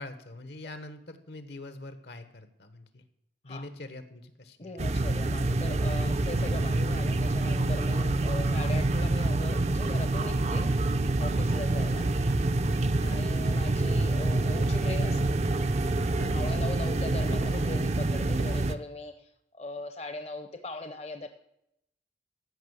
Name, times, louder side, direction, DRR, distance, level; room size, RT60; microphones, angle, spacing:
voice 1, 0.0-3.0 3.4-4.8 16.2-16.8, left 2 dB, 70° left, 10 dB, 1.4 m, -44 dB
voice 2, 4.6-10.7 11.2-12.1 13.0-15.4 16.3-21.3, left 2 dB, 35° left, 7 dB, 0.8 m, -40 dB
sound 1, 4.8-18.7, right 2 dB, 35° right, 0.5 m, -27 dB
sound 2, 11.3-18.6, right 1 dB, 85° right, 1.6 m, -46 dB
14.5 x 5.7 x 8.2 m, 0.80 s
head